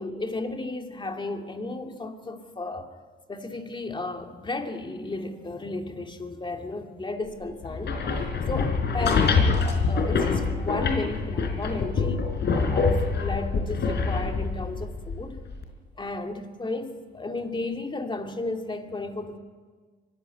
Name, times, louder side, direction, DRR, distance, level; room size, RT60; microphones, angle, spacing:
voice 1, 0.0-2.9 3.3-9.6 9.9-12.2 12.5-15.5 16.0-19.4, left 2 dB, 25° left, 2.5 m, -34 dB
sound 1, 7.6-15.6, left 4 dB, 60° left, 4.6 m, -25 dB
23.5 x 15.5 x 9.3 m
cardioid pair, 90°, 20 cm